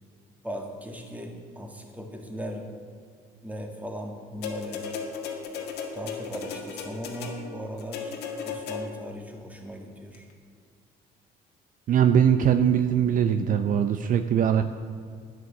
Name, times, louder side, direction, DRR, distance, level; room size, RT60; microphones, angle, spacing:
voice 1, 0.4-2.7 3.4-4.9 5.9-8.2 8.4-10.3, equal, 10° right, 2 dB, 2.0 m, -38 dB
sound 1, 4.4-9.2 10.1-10.2, left 5 dB, 80° left, 1.8 m, -36 dB
voice 2, 11.9-14.6, right 8 dB, 55° right, 9 dB, 0.6 m, -21 dB
10.5 x 9.6 x 7.3 m, 2.1 s
cardioid pair, 110°, 17 cm